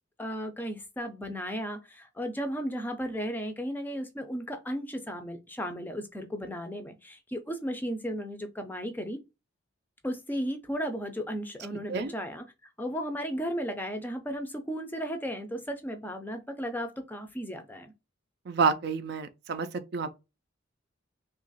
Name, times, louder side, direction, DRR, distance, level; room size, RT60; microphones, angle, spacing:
voice 1, 0.2-9.2 10.0-12.4 12.8-17.9, equal, 10° left, 0.4 m, -35 dB
voice 2, 18.5-20.1, right 5 dB, 55° right, 0.4 m, -29 dB
2.9 x 2.4 x 3.9 m
head